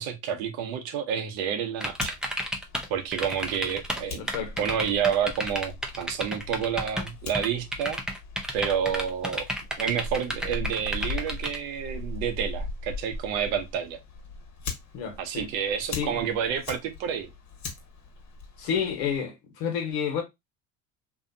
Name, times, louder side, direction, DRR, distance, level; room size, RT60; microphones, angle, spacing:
voice 1, 0.0-2.2 2.9-4.2 4.6-8.0 8.5-9.5 9.8-14.0 15.2-17.3, right 8 dB, 65° right, 0.9 m, -29 dB
Fire, 1.8-19.2, left 3 dB, 45° left, 1.3 m, -40 dB
sound 1, 1.8-2.9 3.1-4.0 4.3-7.1 7.3-11.6, equal, ahead, 0.6 m, -31 dB
voice 2, 4.2-4.6 14.9-15.5 15.9-16.2 18.6-20.2, left 7 dB, 65° left, 1.2 m, -30 dB
2.7 x 2.4 x 2.6 m
hypercardioid pair, 70°, 39 cm